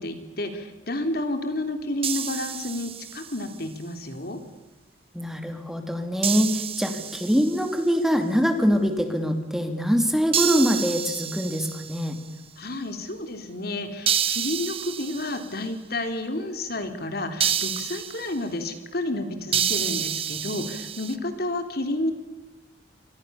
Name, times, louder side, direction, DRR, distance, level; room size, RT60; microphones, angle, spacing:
voice 1, 0.0-4.4 12.6-22.1, left 1 dB, 55° left, 7 dB, 3.6 m, -30 dB
sound 1, 2.0-3.5 6.2-7.8 10.3-12.2 14.1-15.5 17.4-18.3 19.5-21.1, right 9 dB, 30° right, 1.2 m, -29 dB
voice 2, 5.1-12.2, equal, ahead, 5 dB, 2.8 m, -24 dB
28.5 x 25.0 x 7.1 m, 1.0 s
head